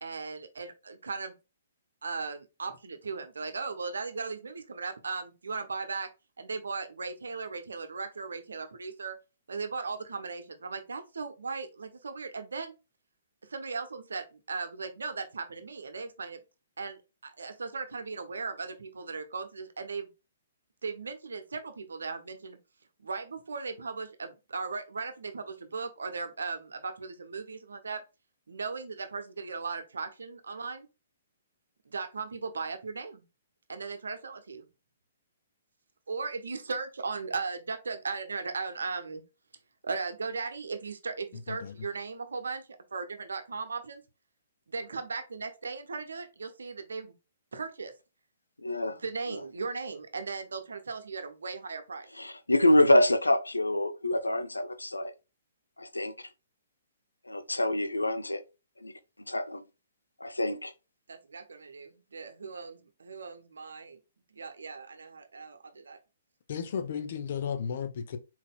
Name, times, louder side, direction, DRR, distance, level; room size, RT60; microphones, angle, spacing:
voice 1, 0.0-1.3 2.0-6.1 6.4-9.2 9.5-12.8 13.4-16.4 16.8-20.1 20.8-22.6 23.0-28.0 28.5-30.9 31.8-33.3 33.7-34.7 36.1-39.2 39.8-44.0 44.7-47.1 47.5-47.9 48.9-52.1 61.1-64.0 64.3-66.0, right 4 dB, 70° right, 0.7 m, -37 dB
voice 2, 48.6-49.0 52.2-55.1 55.8-56.1 57.3-58.4 58.8-58.9 59.3-59.6 60.2-60.7, left 1 dB, 85° left, 0.5 m, -26 dB
voice 3, 66.5-68.2, left 7 dB, 50° left, 0.8 m, -34 dB
4.2 x 4.1 x 2.3 m
figure-of-eight pair, 120°, 0 cm